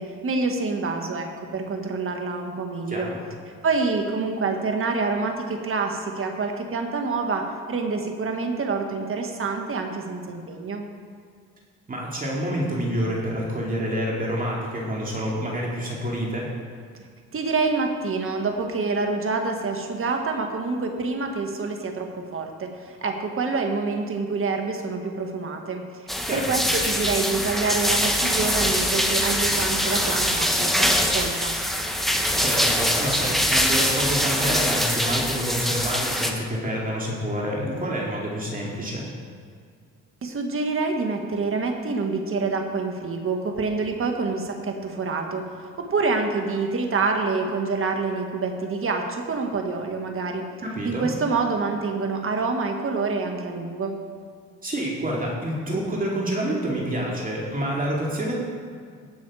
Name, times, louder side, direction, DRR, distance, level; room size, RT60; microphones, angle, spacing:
voice 1, 0.0-3.1 3.6-10.8 17.3-31.5 40.2-50.4 50.8-54.0, right 4 dB, 45° right, 4 dB, 1.7 m, -27 dB
voice 2, 2.9-3.2 11.9-16.5 26.3-26.5 32.4-39.0 50.6-51.1 54.6-58.4, equal, 30° right, -3 dB, 2.4 m, -28 dB
sound 1, 26.1-36.3, equal, ahead, 1.2 m, -23 dB
17.5 x 6.3 x 4.9 m, 2.1 s
cardioid pair, 90°, 30 cm